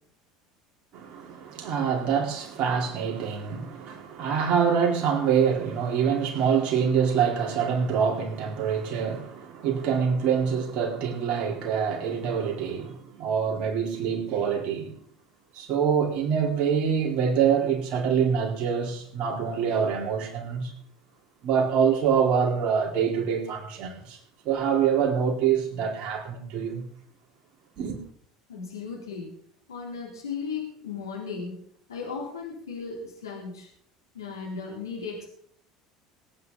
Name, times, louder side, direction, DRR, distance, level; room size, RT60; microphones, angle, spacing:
voice 1, 0.9-15.0 15.5-20.7 21.4-24.2 24.4-26.8 27.8-28.0, right 7 dB, 55° right, 4.6 m, -25 dB
voice 2, 28.5-29.3 29.7-31.5 31.9-33.7 34.1-35.3, left 5 dB, 85° left, 3.9 m, -36 dB
23.5 x 9.7 x 4.2 m
hypercardioid pair, 70°, 2 cm